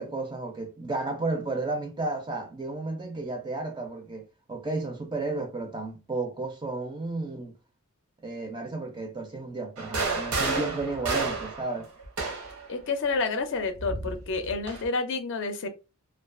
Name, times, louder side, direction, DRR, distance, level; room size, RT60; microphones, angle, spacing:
voice 1, 0.0-7.6 8.2-11.9, right 3 dB, 20° right, 0.4 m, -33 dB
sound 1, 9.8-12.7 13.8-14.9, right 3 dB, 75° right, 0.8 m, -30 dB
voice 2, 12.7-15.7, left 4 dB, 55° left, 0.4 m, -29 dB
2.3 x 2.3 x 2.4 m
head